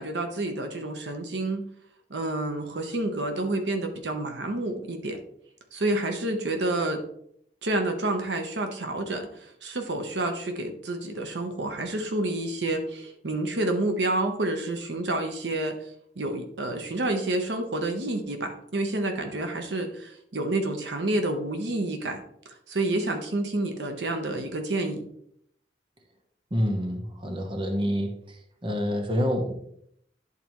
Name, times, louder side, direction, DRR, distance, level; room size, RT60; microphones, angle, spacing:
voice 1, 0.0-1.6 2.1-5.2 5.7-7.0 7.6-15.8 16.2-22.2 22.5-25.0, right 2 dB, 85° right, 5 dB, 0.9 m, -29 dB
voice 2, 26.5-28.1 28.6-29.5, equal, 30° right, 3 dB, 0.9 m, -27 dB
10.5 x 4.1 x 3.0 m, 0.70 s
head